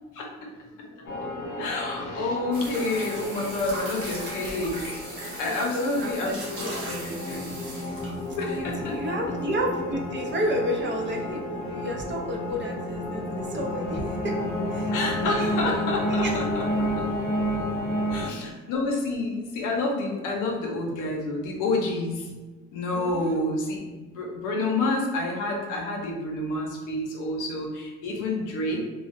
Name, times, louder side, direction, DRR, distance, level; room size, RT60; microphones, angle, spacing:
voice 1, 0.7-1.1 1.6-4.9 5.4-6.3 6.6-7.5 8.4-9.0 14.9-17.0 18.1-22.3 22.7-28.8, left 2 dB, 90° left, 0 dB, 0.6 m, -29 dB
sound 1, 1.1-18.3, left 1 dB, 45° left, 0.6 m, -31 dB
sound 2, 2.5-8.7 9.7-9.8, right 1 dB, 85° right, 1.1 m, -38 dB
voice 2, 5.5-7.5 8.5-14.4 14.7-14.9 15.2-15.5 16.1-16.8 18.2-18.5 22.9-23.4, equal, 40° right, 0 dB, 0.5 m, -32 dB
2.3 x 2.1 x 2.5 m, 1.2 s
cardioid pair, 90°, 30 cm